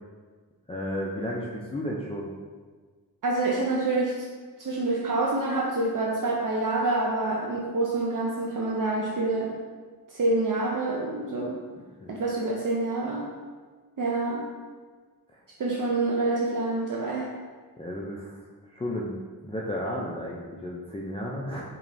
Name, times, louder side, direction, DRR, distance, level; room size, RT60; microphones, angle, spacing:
voice 1, 0.7-2.3 12.0-12.2 15.3-15.4 17.8-18.4 18.7-21.6, equal, 15° left, -4 dB, 0.4 m, -33 dB
voice 2, 3.2-4.2 4.6-9.5 10.1-11.6 12.1-13.3 14.0-14.5 15.6-17.3, right 2 dB, 55° right, -3 dB, 0.6 m, -27 dB
4.6 x 3.1 x 2.6 m, 1.5 s
cardioid pair, 70°, 40 cm